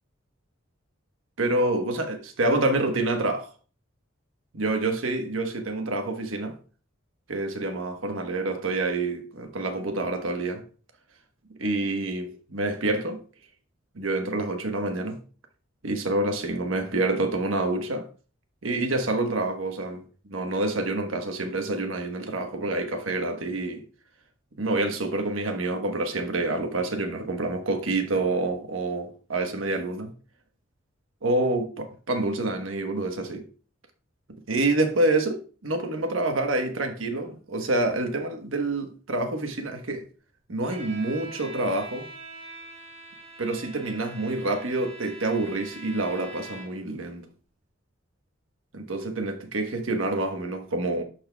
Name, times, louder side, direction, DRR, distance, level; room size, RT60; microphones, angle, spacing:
voice 1, 1.4-3.5 4.5-6.6 7.3-10.6 11.5-13.2 13.9-15.2 15.8-18.1 18.6-23.8 24.6-30.1 31.2-33.4 34.5-40.1 40.5-42.1 43.4-47.3 48.7-51.0, right 2 dB, 75° right, 1.2 m, -27 dB
Bowed string instrument, 40.6-46.9, right 2 dB, 35° right, 2.0 m, -44 dB
12.5 x 4.3 x 2.3 m
head